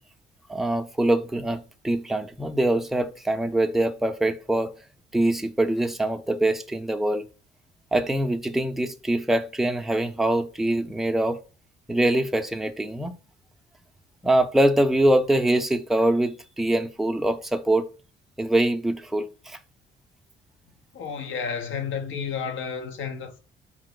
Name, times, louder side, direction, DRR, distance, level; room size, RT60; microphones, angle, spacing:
voice 1, 0.5-4.7 5.1-7.3 7.9-11.4 11.9-13.2 14.2-17.9 18.4-19.6, right 1 dB, ahead, 0.5 m, -23 dB
voice 2, 20.9-23.4, left 6 dB, 80° left, 0.9 m, -31 dB
4.7 x 3.0 x 3.8 m
cardioid pair, 90°, 20 cm